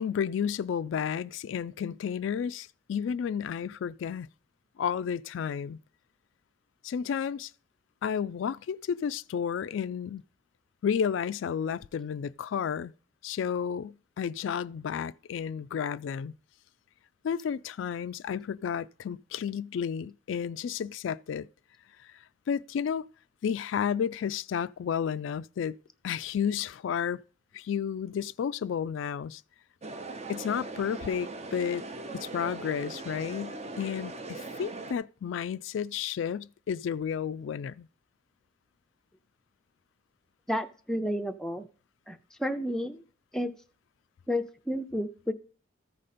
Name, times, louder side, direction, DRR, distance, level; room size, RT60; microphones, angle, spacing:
voice 1, 0.0-4.3 4.8-5.8 6.8-7.5 8.0-10.2 10.8-12.9 13.2-16.3 17.2-21.5 22.5-23.1 23.4-25.8 26.0-27.2 27.5-29.4 30.3-31.8 32.1-37.9, left 7 dB, 75° left, 0.3 m, -32 dB
sound 1, 29.8-34.9, right 3 dB, 35° right, 0.7 m, -40 dB
voice 2, 40.5-41.7 42.1-43.0 43.3-43.5 44.3-45.3, equal, 5° left, 0.5 m, -31 dB
14.0 x 5.1 x 4.2 m
head